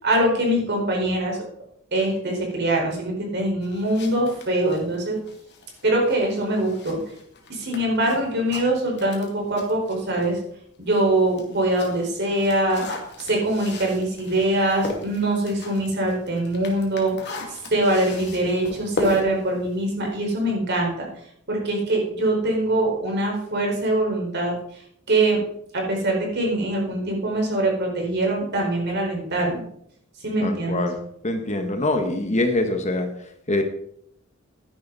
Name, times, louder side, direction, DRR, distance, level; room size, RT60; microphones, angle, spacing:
voice 1, 0.0-1.4 1.9-5.2 5.8-7.0 7.5-10.4 10.8-21.1 21.5-24.8 25.1-25.4 25.7-29.6 30.2-30.9, right 1 dB, 55° right, 0 dB, 4.8 m, -23 dB
sound 1, 3.6-10.4 10.8-20.5, left 2 dB, 55° left, 2.5 m, -37 dB
voice 2, 30.4-31.0 31.2-33.6, left 2 dB, 35° left, 5 dB, 1.4 m, -24 dB
12.5 x 10.5 x 4.1 m, 0.69 s
head